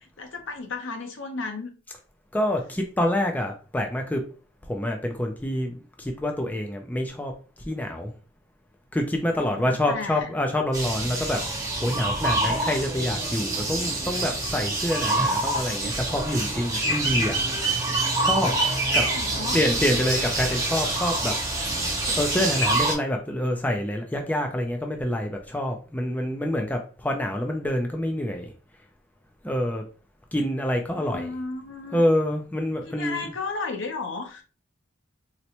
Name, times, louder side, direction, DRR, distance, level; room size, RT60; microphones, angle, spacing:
voice 1, 0.0-1.7 9.3-10.3 18.8-19.6 30.9-32.0 32.8-34.4, left 3 dB, 70° left, 0.7 m, -34 dB
voice 2, 2.3-4.2 4.7-7.3 7.7-8.1 8.9-11.4 11.8-17.4 18.2-18.5 18.9-19.1 19.5-21.7 22.0-28.5 29.4-29.8 30.3-31.3 31.9-33.2, left 1 dB, 10° left, 0.4 m, -27 dB
sound 1, 10.7-23.0, right 2 dB, 15° right, 0.8 m, -26 dB
4.1 x 2.1 x 2.8 m
head